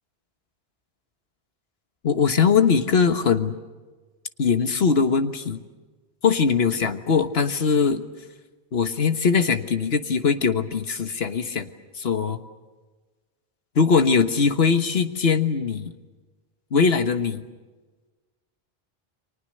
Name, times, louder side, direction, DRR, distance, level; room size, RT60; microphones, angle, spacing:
voice 1, 2.0-3.6 4.4-5.6 6.2-8.0 8.7-11.7 12.0-12.4 13.7-15.9 16.7-17.4, left 5 dB, 80° left, 8 dB, 1.6 m, -21 dB
30.0 x 24.5 x 6.6 m, 1.3 s
omnidirectional pair, 1.0 m